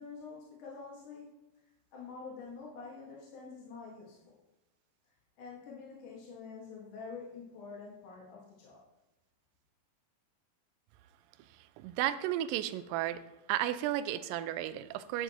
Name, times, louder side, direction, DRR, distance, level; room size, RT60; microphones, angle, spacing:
voice 1, 0.0-1.4 1.9-4.4 5.4-8.8, left 5 dB, 60° left, -4 dB, 3.0 m, -47 dB
voice 2, 11.8-13.2 13.5-15.2, right 13 dB, 80° right, 12 dB, 2.1 m, -33 dB
11.0 x 9.4 x 3.0 m, 1.0 s
omnidirectional pair, 4.3 m